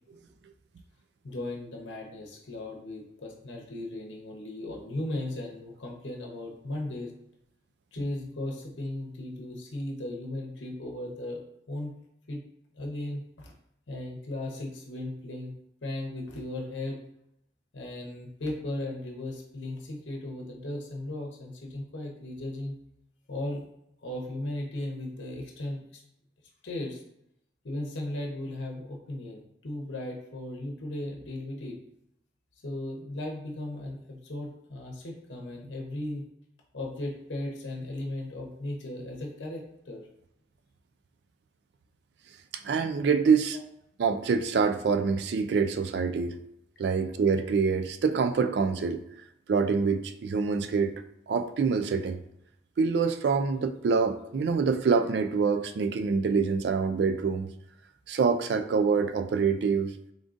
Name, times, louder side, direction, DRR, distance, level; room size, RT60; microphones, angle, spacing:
voice 1, 1.2-7.1 7.9-11.4 11.7-11.9 12.3-12.4 12.7-13.5 13.9-15.5 15.8-17.1 17.7-22.8 23.3-23.6 24.0-26.0 26.6-27.0 27.6-31.8 32.6-36.2 36.7-40.1, left 1 dB, 85° left, 0 dB, 0.8 m, -36 dB
voice 2, 42.5-43.6 44.0-46.4 46.8-49.0 49.5-50.9 51.3-52.2 52.8-57.5 58.1-59.9, right 5 dB, 60° right, 9 dB, 0.3 m, -25 dB
3.8 x 3.6 x 2.5 m, 0.80 s
head